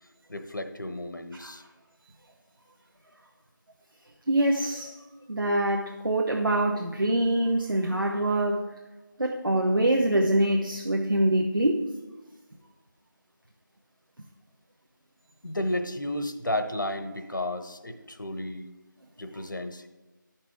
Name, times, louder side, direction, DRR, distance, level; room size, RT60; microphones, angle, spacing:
voice 1, 0.3-1.6 15.4-18.6 19.2-19.9, left 1 dB, 65° left, 7 dB, 1.0 m, -32 dB
voice 2, 4.3-5.0 5.3-8.7 9.2-11.9, right 1 dB, 90° right, 1 dB, 1.1 m, -24 dB
12.5 x 5.9 x 3.5 m, 1.2 s
figure-of-eight pair, 175°, 11 cm